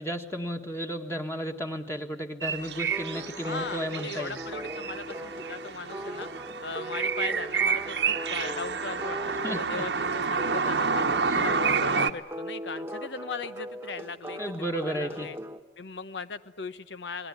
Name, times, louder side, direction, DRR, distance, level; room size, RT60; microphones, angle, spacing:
voice 1, 0.0-4.4 9.4-9.8 11.3-11.5 14.4-15.3, equal, 15° left, 3 dB, 1.6 m, -33 dB
sound 1, 2.4-12.1, right 5 dB, 75° right, 1.2 m, -29 dB
sound 2, 2.9-15.6, equal, 15° right, 1.3 m, -39 dB
voice 2, 3.3-6.3 6.6-11.0 11.4-15.4 15.8-17.3, left 4 dB, 80° left, 12 dB, 0.9 m, -38 dB
28.0 x 20.5 x 9.7 m, 1.1 s
head